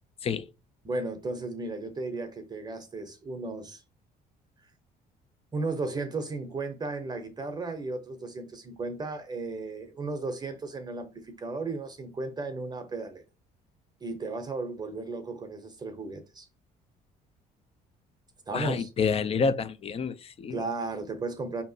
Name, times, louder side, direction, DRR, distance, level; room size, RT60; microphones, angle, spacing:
voice 1, 0.8-3.8 5.5-13.2 14.0-16.5 18.5-18.9 20.5-21.6, right 3 dB, 25° right, 0.7 m, -35 dB
voice 2, 18.5-20.6, left 5 dB, 35° left, 0.4 m, -28 dB
5.1 x 2.8 x 2.7 m
cardioid pair, 110°, 17 cm